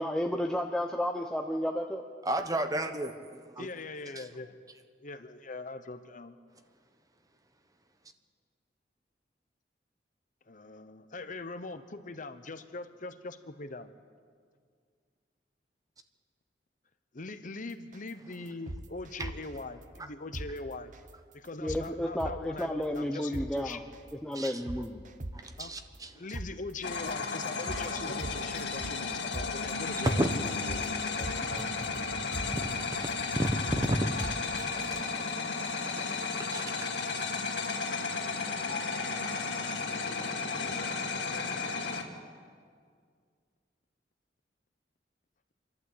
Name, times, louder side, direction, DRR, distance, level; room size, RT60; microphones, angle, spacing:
voice 1, 0.0-2.0 21.6-23.8 24.2-25.0, equal, 5° left, 2 dB, 0.8 m, -32 dB
voice 2, 2.2-3.7 4.2-4.3 19.2-19.3 24.3-24.6 25.3-26.1 30.0-30.3 30.8-31.0 31.4-32.0 32.9-33.0 33.4-35.7 36.0-36.9, right 1 dB, 20° right, 7 dB, 1.3 m, -33 dB
voice 3, 3.6-4.5 5.0-6.4 10.5-13.9 17.1-20.9 21.3-23.8 25.6-25.7 26.1-30.2 30.5-31.3, left 3 dB, 50° left, 10 dB, 0.9 m, -42 dB
sound 1, 17.9-18.1 18.5-19.6 20.0-20.1 20.3-20.5 20.9-21.1 21.5-21.9 22.2-22.6 23.0-23.1 23.3-23.5 23.9-24.1 24.5-25.6 26.0-26.1 26.3-26.5 26.9-27.1 27.5-27.8 28.2-29.1 29.3-29.5 29.9-30.1 30.5-31.6 32.0-32.1 32.3-32.5 32.9-33.1 33.5-33.9 34.2-34.6 35.0-35.1, right 1 dB, 50° right, 1.0 m, -39 dB
sound 2, 26.8-42.0, left 4 dB, 90° left, 2.3 m, -34 dB
27.5 x 12.0 x 8.6 m, 2.1 s
head